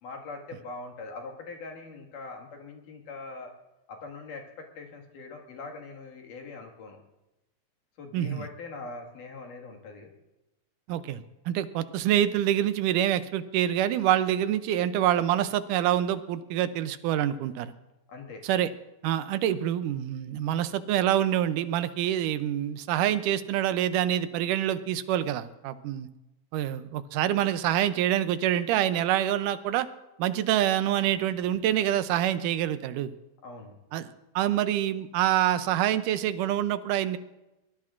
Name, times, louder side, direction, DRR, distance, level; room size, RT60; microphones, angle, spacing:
voice 1, 0.0-3.5 3.9-7.0 8.0-10.1 18.1-18.4 33.4-33.8, left 3 dB, 80° left, 1 dB, 3.4 m, -42 dB
voice 2, 8.1-8.5 10.9-17.7 18.4-18.7 19.0-26.1 26.5-29.9 30.2-33.1 33.9-34.1 34.4-37.2, right 11 dB, 80° right, 12 dB, 2.2 m, -26 dB
23.0 x 19.5 x 2.5 m, 0.99 s
omnidirectional pair, 3.7 m